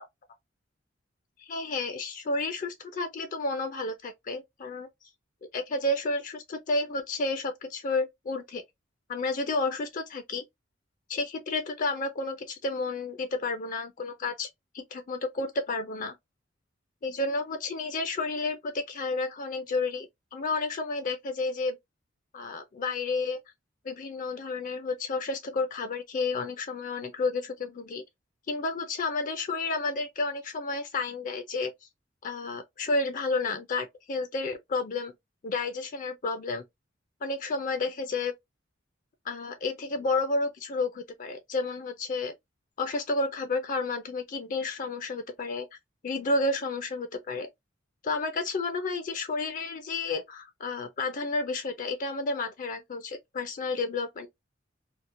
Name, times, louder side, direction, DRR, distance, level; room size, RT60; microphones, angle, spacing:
voice 1, 1.4-5.1 5.5-8.6 9.1-10.4 11.1-14.5 14.7-16.1 17.0-21.8 22.3-23.4 23.8-28.0 28.5-31.7 32.2-35.1 35.4-36.6 37.2-38.3 39.3-42.3 42.8-45.7 46.0-47.5 48.0-54.3, left 3 dB, 45° left, 0.4 m, -31 dB
2.8 x 2.1 x 2.5 m
head